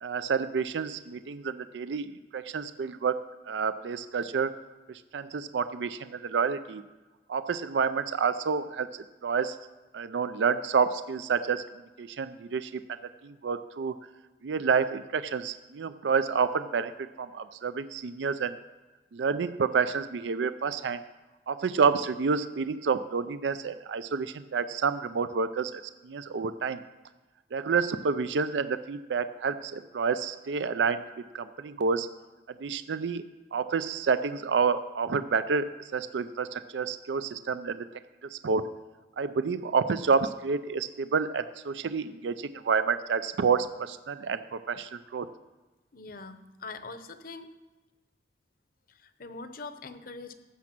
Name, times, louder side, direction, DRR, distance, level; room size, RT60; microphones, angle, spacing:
voice 1, 0.0-3.2 3.5-4.5 4.9-6.8 7.3-8.9 9.2-9.6 9.9-11.6 12.0-12.8 13.2-13.9 14.4-16.9 17.2-18.6 19.1-21.0 21.5-26.8 27.5-31.1 31.3-32.1 32.6-37.8 38.3-38.6 39.2-45.3, right 5 dB, 75° right, 12 dB, 0.4 m, -29 dB
voice 2, 45.9-47.5 49.0-50.3, left 3 dB, 55° left, 10 dB, 0.8 m, -42 dB
15.0 x 6.2 x 6.0 m, 1.2 s
head